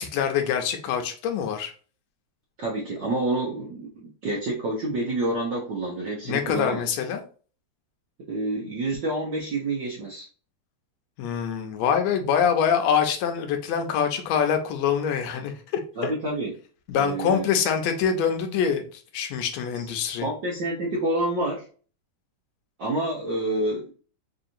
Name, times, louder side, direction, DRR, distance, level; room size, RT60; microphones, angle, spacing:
voice 1, 0.0-1.7 6.2-7.2 11.2-16.1 16.9-20.3, left 7 dB, 75° left, 5 dB, 1.8 m, -25 dB
voice 2, 2.6-3.9 4.2-6.9 8.3-10.3 16.0-16.5 17.0-17.4 19.7-19.9 20.2-21.6 22.8-23.9, right 2 dB, 85° right, -3 dB, 0.9 m, -28 dB
4.9 x 2.8 x 2.6 m, 0.40 s
omnidirectional pair, 3.3 m